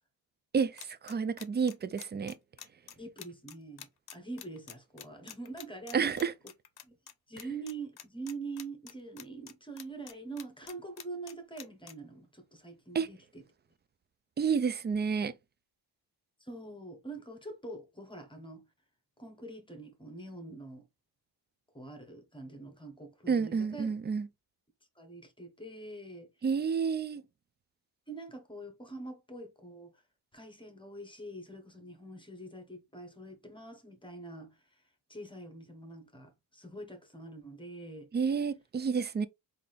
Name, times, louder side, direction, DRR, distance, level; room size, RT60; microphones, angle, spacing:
voice 1, 0.5-2.3 5.9-6.3 12.9-13.1 14.4-15.3 23.3-24.3 26.4-27.2 38.1-39.3, right 6 dB, 25° right, 0.4 m, -30 dB
sound 1, 0.8-7.1 7.4-7.7 8.0-9.5 9.8-11.9, left 10 dB, 55° left, 0.7 m, -47 dB
voice 2, 3.0-6.1 6.9-7.0 7.3-13.4 16.4-18.6 19.2-20.9 21.7-23.9 25.0-26.3 28.1-30.0 30.3-34.8 35.1-38.1, right 2 dB, 10° left, 1.2 m, -45 dB
3.8 x 2.8 x 3.3 m
cardioid pair, 75°, 46 cm